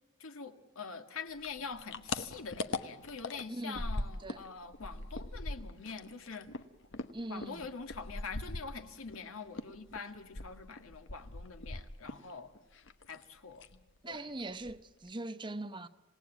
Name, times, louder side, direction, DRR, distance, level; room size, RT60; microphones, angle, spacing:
voice 1, 0.2-6.5 7.3-12.5 13.1-13.7 14.1-14.2, left 5 dB, 80° left, 1.8 m, -44 dB
sound 1, 1.4-4.5 4.7-9.2 9.5-12.3 12.6-13.3 13.6-13.8 14.1-14.2 14.5-15.1, left 2 dB, 60° left, 1.1 m, -40 dB
voice 2, 3.5-3.9 4.2-4.4 7.1-7.6 14.0-15.9, right 2 dB, 20° right, 0.8 m, -41 dB
27.5 x 17.5 x 9.2 m
head